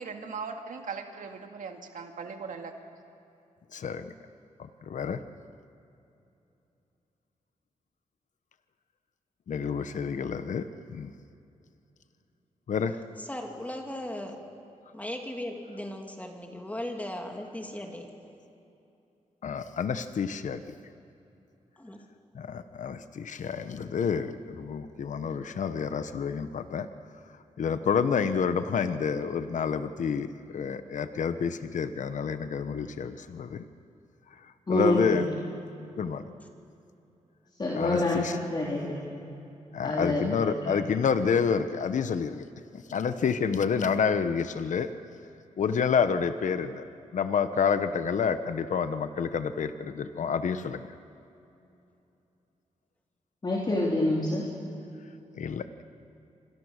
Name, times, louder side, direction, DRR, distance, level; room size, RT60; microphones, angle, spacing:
voice 1, 0.0-2.7, right 5 dB, 80° right, 4 dB, 2.3 m, -39 dB
voice 2, 3.7-4.1 4.6-5.2 9.5-11.1 12.7-13.0 19.4-20.6 22.3-26.9 27.6-33.6 34.7-35.3 36.0-36.3 37.7-38.4 39.7-42.4 42.7-44.9 45.6-46.8 47.1-50.9 55.4-55.6, left 6 dB, 70° left, 10 dB, 1.0 m, -29 dB
voice 3, 13.2-14.4 14.9-18.1 21.8-22.0, left 1 dB, 10° left, 2 dB, 2.8 m, -37 dB
voice 4, 34.7-35.2 37.6-38.2 38.5-38.8 39.1-39.2 39.8-40.2 40.6-40.7 53.4-54.5, left 2 dB, 35° left, -4 dB, 3.7 m, -26 dB
28.5 x 25.0 x 6.6 m, 2.8 s
wide cardioid pair, 105°, 13 cm